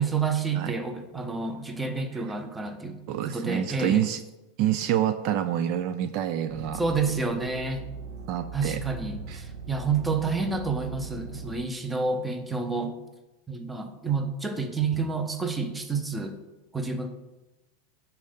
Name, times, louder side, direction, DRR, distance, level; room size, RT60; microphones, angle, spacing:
voice 1, 0.0-3.0 3.2-4.0 6.7-7.8 8.5-12.9 13.5-16.4 16.7-17.1, right 4 dB, 10° right, 7 dB, 0.8 m, -29 dB
voice 2, 3.1-4.2 4.6-6.8 8.3-8.8 9.3-9.4, right 11 dB, 50° right, 11 dB, 0.4 m, -27 dB
sound 1, 6.5-11.6, right 5 dB, 70° right, 1.9 m, -40 dB
10.5 x 4.2 x 3.9 m, 1.0 s
supercardioid pair, 145°, 0 cm